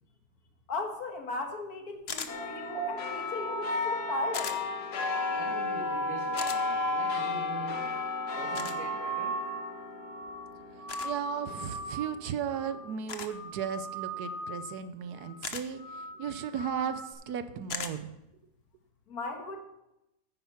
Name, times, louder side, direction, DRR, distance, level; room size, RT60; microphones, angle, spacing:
voice 1, 0.7-4.6 19.1-19.6, left 3 dB, 70° left, 4 dB, 2.0 m, -37 dB
sound 1, 2.1-2.3 4.3-4.6 6.4-6.6 8.5-8.8 10.9-11.1 13.1-13.4 15.4-15.7 17.7-17.9, left 6 dB, 45° left, 1.0 m, -37 dB
sound 2, 2.3-13.0 13.5-13.6, left 4 dB, 85° left, 1.7 m, -35 dB
sound 3, 2.7-9.7 10.0-10.5 10.8-12.2 12.5-13.0 13.3-14.7 15.1-15.4 15.8-17.1, right 2 dB, 35° right, 3.3 m, -37 dB
voice 2, 5.3-7.8 8.4-9.3, right 3 dB, 55° right, -1 dB, 2.1 m, -44 dB
voice 3, 10.7-18.2, right 8 dB, 80° right, 11 dB, 1.2 m, -36 dB
10.0 x 9.5 x 5.7 m, 0.89 s
omnidirectional pair, 1.7 m